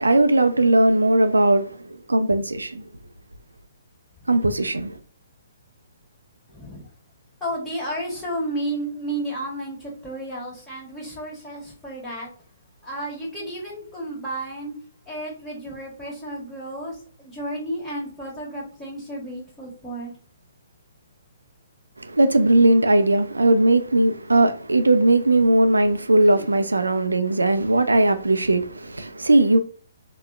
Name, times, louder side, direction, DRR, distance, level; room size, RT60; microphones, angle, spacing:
voice 1, 0.0-2.8 4.3-5.0 22.0-29.6, right 2 dB, 80° right, 0.3 m, -18 dB
voice 2, 6.5-6.9 7.4-12.3 12.8-14.7 15.0-20.1 26.2-26.5, right 1 dB, 10° left, 1.4 m, -32 dB
3.9 x 2.1 x 2.3 m
figure-of-eight pair, 130°, 0 cm